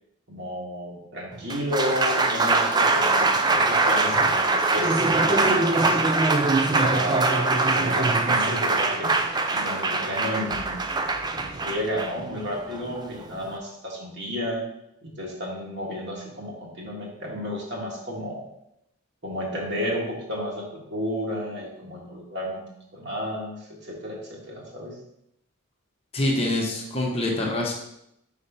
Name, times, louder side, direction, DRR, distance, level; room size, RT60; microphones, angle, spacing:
voice 1, 0.3-6.0 6.6-9.2 9.5-10.8 11.4-14.7 15.0-18.5 19.2-22.6 22.9-24.9, equal, 55° right, -2 dB, 1.7 m, -32 dB
Applause, 1.3-13.6, right 3 dB, 20° right, 0.4 m, -22 dB
voice 2, 26.1-27.7, left 1 dB, 25° left, -1 dB, 0.9 m, -25 dB
4.8 x 4.2 x 5.6 m, 0.81 s
head